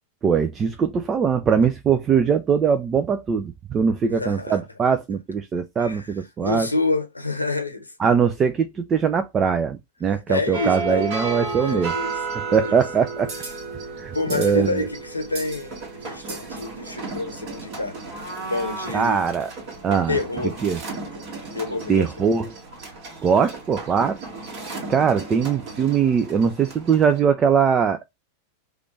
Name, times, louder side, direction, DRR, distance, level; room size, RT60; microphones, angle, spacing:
voice 1, 0.2-6.7 8.0-11.9 12.5-13.3 14.0-14.9 18.9-19.5 19.8-20.2 20.6-20.8 21.9-22.6 23.2-24.2 24.9-28.1, right 6 dB, 25° right, 0.4 m, -21 dB
voice 2, 4.1-4.6 5.8-6.1 6.4-7.9 10.3-11.1 11.6-12.2 12.5-12.8 14.1-18.0 18.4-19.2 20.1-20.6 21.1-21.2 21.5-22.4, left 3 dB, 85° left, 0.9 m, -28 dB
sound 1, 10.5-27.2, right 3 dB, 45° right, 1.7 m, -34 dB
4.9 x 2.5 x 3.1 m
figure-of-eight pair, 90°, 0 cm